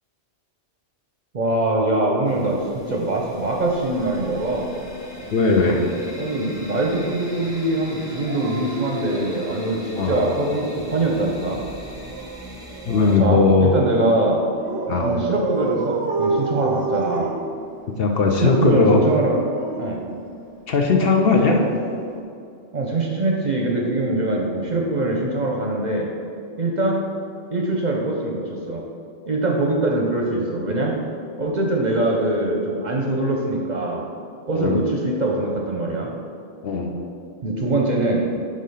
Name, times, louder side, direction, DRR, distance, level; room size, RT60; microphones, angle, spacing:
voice 1, 1.3-4.7 6.2-11.6 13.2-14.4 15.0-15.9 16.2-17.3 18.4-19.4 19.8-20.0 21.4-21.6 22.7-26.1 26.6-27.0 27.5-28.8 29.3-30.9 31.4-34.0 34.5-36.1 37.4-38.2, right 2 dB, 45° right, -1 dB, 0.6 m, -23 dB
sound 1, 2.3-13.2, left 1 dB, 5° right, 0.7 m, -40 dB
Dog, 3.8-5.6 8.1-10.5 11.7-13.4 14.6-18.1 19.1-20.7 22.0-22.2, right 3 dB, 90° right, 0.9 m, -31 dB
voice 2, 5.3-5.8 9.9-10.2 12.9-13.7 14.9-15.1 18.0-19.0 20.7-21.6 34.5-34.8 36.6-36.9, left 4 dB, 60° left, 1 dB, 0.7 m, -18 dB
5.3 x 3.7 x 5.5 m, 2.4 s
omnidirectional pair, 1.2 m